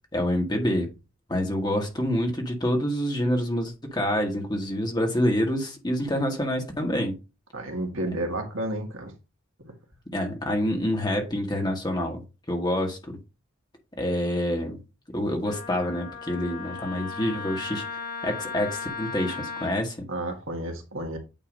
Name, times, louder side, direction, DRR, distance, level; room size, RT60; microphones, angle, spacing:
voice 1, 0.1-0.9 1.3-7.2 10.1-12.2 12.5-13.2 14.0-14.8 15.1-17.8 18.2-20.1, left 1 dB, 20° left, 1.5 m, -27 dB
voice 2, 7.5-9.1 9.6-9.7 20.1-21.2, right 1 dB, 75° right, 1.9 m, -31 dB
Wind instrument woodwind instrument, 15.4-19.7, left 5 dB, 45° left, 1.4 m, -36 dB
9.0 x 3.0 x 5.2 m
head